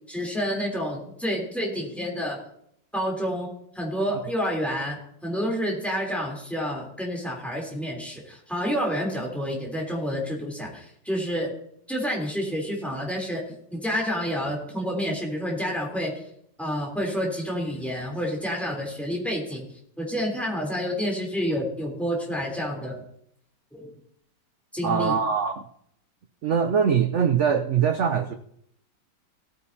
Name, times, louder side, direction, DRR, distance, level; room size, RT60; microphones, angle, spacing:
voice 1, 0.1-2.4 2.9-4.9 5.2-11.5 11.9-13.4 13.7-16.2 16.6-19.7 20.0-23.0 23.7-23.9 24.7-25.1, equal, ahead, -2 dB, 3.2 m, -29 dB
voice 2, 24.8-25.6 26.4-28.3, right 7 dB, 80° right, 8 dB, 0.6 m, -22 dB
17.0 x 9.5 x 2.8 m, 0.70 s
omnidirectional pair, 2.0 m